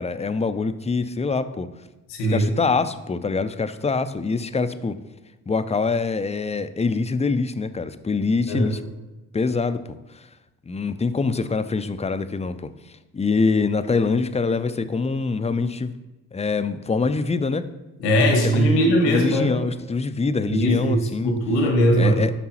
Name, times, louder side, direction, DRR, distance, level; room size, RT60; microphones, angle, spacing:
voice 1, 0.0-1.7 2.3-5.0 5.5-8.8 9.3-9.8 10.7-12.7 13.1-15.9 16.3-17.7 18.5-21.3 21.9-22.3, left 4 dB, 15° left, 12 dB, 0.5 m, -24 dB
voice 2, 2.1-2.5 8.5-8.8 18.0-19.6 20.4-22.2, equal, 85° left, 1 dB, 1.5 m, -20 dB
11.0 x 5.3 x 3.0 m, 1.1 s
hypercardioid pair, 50°, 41 cm